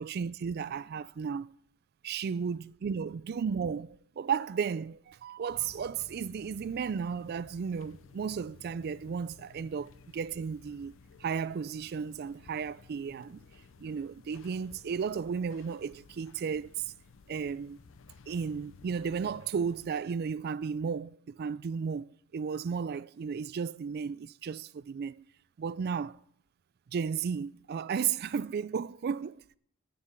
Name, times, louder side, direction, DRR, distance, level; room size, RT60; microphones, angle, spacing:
voice 1, 0.0-1.6 2.0-10.9 11.2-13.4 13.8-16.9 17.3-17.8 18.3-22.1 22.3-25.2 25.6-26.2 26.9-29.4, right 6 dB, 50° right, 0.3 m, -34 dB
sound 1, 5.5-19.9, left 4 dB, 70° left, 0.5 m, -56 dB
9.7 x 6.7 x 6.7 m
head